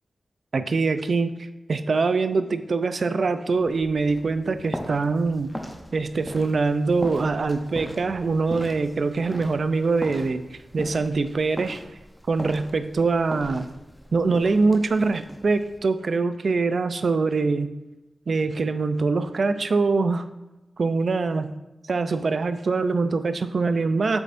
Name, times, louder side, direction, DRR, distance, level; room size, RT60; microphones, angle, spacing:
voice 1, 0.5-5.5 5.9-11.8 12.3-13.7 14.1-17.7 18.3-20.3 20.8-21.5 21.9-24.2, right 4 dB, 55° right, 11 dB, 0.4 m, -23 dB
sound 1, 3.6-15.8, equal, 5° left, 0.7 m, -39 dB
8.1 x 6.7 x 2.5 m, 1.0 s
wide cardioid pair, 150°, 0 cm